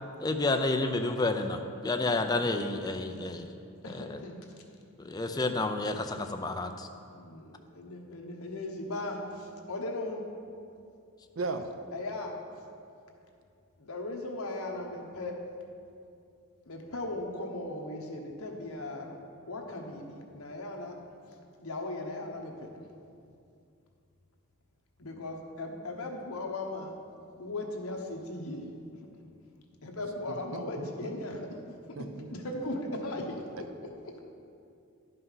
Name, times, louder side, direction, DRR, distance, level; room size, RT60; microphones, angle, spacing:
voice 1, 0.2-3.5 3.9-4.2 5.0-6.9, left 2 dB, 15° left, 6 dB, 0.4 m, -30 dB
voice 2, 1.9-2.2 3.0-3.2 3.8-4.4 5.3-5.4 7.1-10.2 11.9-12.3 13.8-15.4 16.7-19.2 19.5-21.0 21.6-22.7 25.0-26.9 27.4-28.6 29.8-31.4 32.2-33.7 34.0-34.1, left 2 dB, 75° left, 1 dB, 1.2 m, -38 dB
voice 3, 11.4-11.7 30.3-31.4 32.0-32.3, right 3 dB, 60° right, 7 dB, 0.6 m, -37 dB
11.0 x 5.6 x 5.6 m, 2.5 s
head